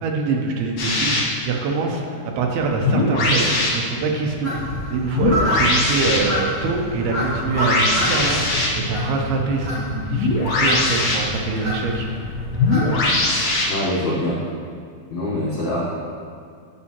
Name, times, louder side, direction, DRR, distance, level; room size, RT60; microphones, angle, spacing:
voice 1, 0.0-4.5 4.9-12.1, right 4 dB, 80° right, 1 dB, 2.6 m, -24 dB
sound 1, 0.8-1.2 2.6-3.7 5.1-6.2 7.6-8.7 10.1-11.1 12.5-13.6, left 2 dB, 55° left, 2.4 m, -20 dB
sound 2, 4.4-13.2, left 1 dB, 35° right, 1.5 m, -27 dB
voice 2, 13.7-14.4 15.1-15.8, left 1 dB, 80° left, -6 dB, 1.7 m, -24 dB
9.6 x 7.4 x 2.9 m, 2.1 s
omnidirectional pair, 4.7 m